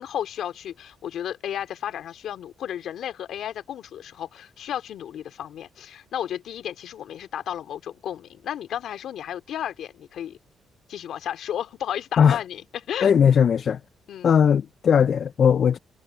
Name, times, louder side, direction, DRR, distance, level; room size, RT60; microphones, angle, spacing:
voice 1, 0.0-10.4 10.9-13.1 14.1-14.3, left 10 dB, 70° left, 2.9 m, -33 dB
voice 2, 13.0-13.8 14.2-15.8, left 7 dB, 55° left, 0.4 m, -18 dB
cardioid pair, 90°, 0 cm